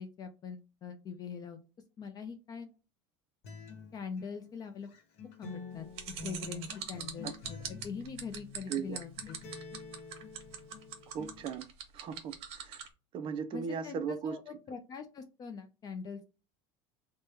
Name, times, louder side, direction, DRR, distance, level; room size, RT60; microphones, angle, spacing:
voice 1, 0.0-1.6 2.0-2.7 3.9-4.9 5.4-5.9 6.2-9.4 13.5-16.2, left 6 dB, 30° left, 0.4 m, -43 dB
Acoustic guitar, 3.4-11.4, left 3 dB, 55° left, 1.0 m, -48 dB
sound 1, 6.0-12.9, right 10 dB, 55° right, 1.0 m, -42 dB
voice 2, 8.7-9.0 11.1-11.7 11.9-12.3 12.6-12.8 13.1-14.4, right 7 dB, 40° right, 0.5 m, -37 dB
3.4 x 2.1 x 4.3 m
supercardioid pair, 135°, 13 cm